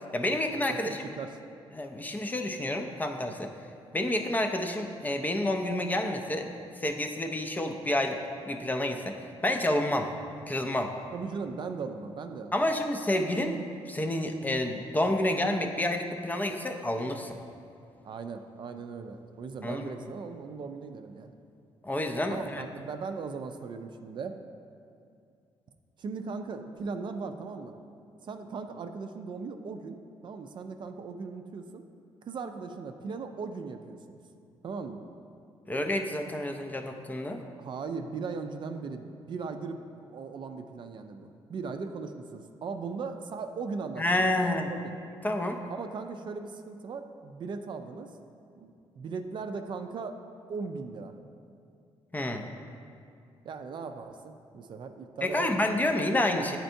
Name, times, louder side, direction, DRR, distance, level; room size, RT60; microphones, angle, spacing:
voice 1, 0.1-1.0 1.7-3.5 3.9-6.5 6.8-8.2 8.5-9.1 9.4-10.1 10.5-10.9 12.5-17.4 19.6-19.9 21.8-22.6 35.7-37.4 44.0-44.7 45.2-45.6 52.1-52.4 55.2-56.6, left 1 dB, 15° left, 4 dB, 0.4 m, -29 dB
voice 2, 0.7-1.4 11.1-12.7 18.0-21.3 22.3-24.4 26.0-27.8 28.2-30.0 30.2-31.8 32.2-34.2 34.6-35.0 37.6-45.0 45.7-48.1 48.6-48.7 49.0-50.2 50.5-51.2 53.4-55.9, right 4 dB, 50° right, 6 dB, 0.4 m, -38 dB
9.0 x 4.4 x 2.6 m, 2.4 s
cardioid pair, 90°, 10 cm